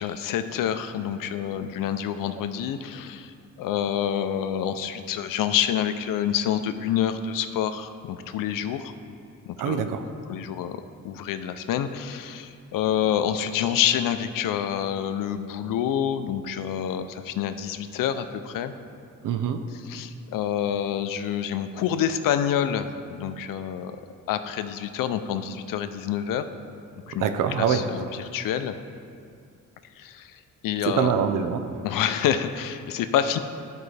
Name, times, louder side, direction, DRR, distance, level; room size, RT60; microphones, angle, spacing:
voice 1, 0.0-8.9 9.5-9.9 10.3-18.7 19.7-24.0 24.3-26.4 27.1-27.3 27.6-28.8 30.0-31.1 31.8-33.4, left 9 dB, 85° left, 10 dB, 0.5 m, -27 dB
voice 2, 9.6-10.0 19.2-19.6 27.2-27.8 30.9-31.6, right 8 dB, 75° right, 8 dB, 0.6 m, -24 dB
11.5 x 4.6 x 3.3 m, 2.4 s
cardioid pair, 115°, 32 cm